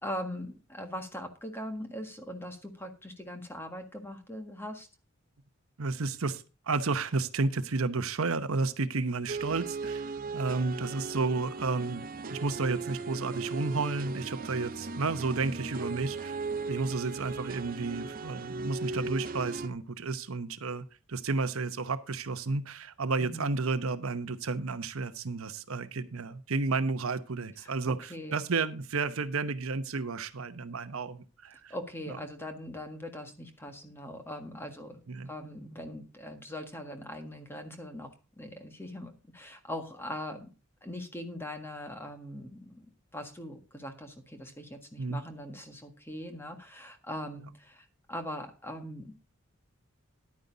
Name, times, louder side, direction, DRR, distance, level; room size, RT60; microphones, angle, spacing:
voice 1, 0.0-4.9 23.2-23.5 27.6-28.4 31.7-40.5 40.8-42.9 43.1-49.1, left 1 dB, 10° left, 6 dB, 1.6 m, -41 dB
voice 2, 5.8-16.4 16.7-31.7 35.1-35.3 45.0-45.2, right 3 dB, 80° right, 12 dB, 0.9 m, -32 dB
sound 1, 9.3-19.7, right 3 dB, 40° right, 0.7 m, -37 dB
11.0 x 9.3 x 3.9 m, 0.32 s
head